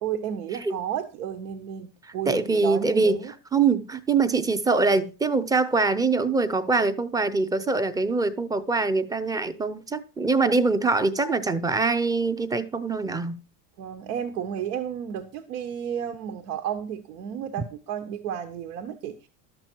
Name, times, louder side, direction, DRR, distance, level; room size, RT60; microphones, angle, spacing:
voice 1, 0.0-3.3 13.8-19.3, right 9 dB, 90° right, 1.4 m, -32 dB
voice 2, 2.3-3.2 3.5-13.4, right 3 dB, 10° right, 0.5 m, -23 dB
12.5 x 7.5 x 4.5 m
supercardioid pair, 145°, 44 cm